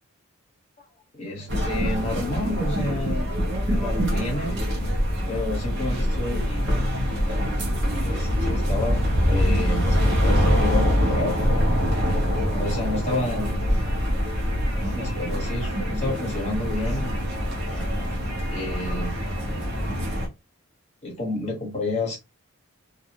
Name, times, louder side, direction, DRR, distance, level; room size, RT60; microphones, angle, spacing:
voice 1, 1.1-3.3 3.7-4.5 5.3-6.7 8.0-11.6 12.5-13.7 14.9-17.2 17.7-17.8 18.5-19.1 21.0-22.2, left 2 dB, 30° left, 0.9 m, -30 dB
sound 1, 1.5-20.3, equal, 50° right, 0.7 m, -24 dB
2.3 x 2.0 x 2.8 m
head